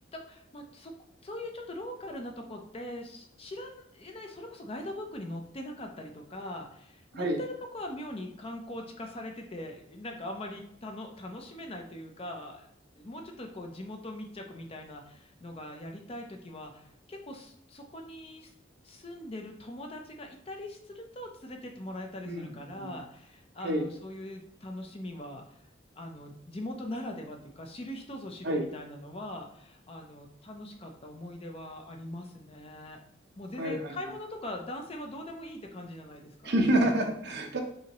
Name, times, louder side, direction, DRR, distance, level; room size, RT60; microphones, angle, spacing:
voice 1, 0.1-0.9 1.2-12.7 12.9-18.5 18.8-25.6 26.0-33.0 33.4-36.5, left 1 dB, 30° left, 2 dB, 0.6 m, -41 dB
voice 2, 33.6-33.9 36.4-37.6, right 1 dB, 60° right, 2 dB, 0.8 m, -28 dB
5.5 x 2.8 x 3.0 m, 0.73 s
head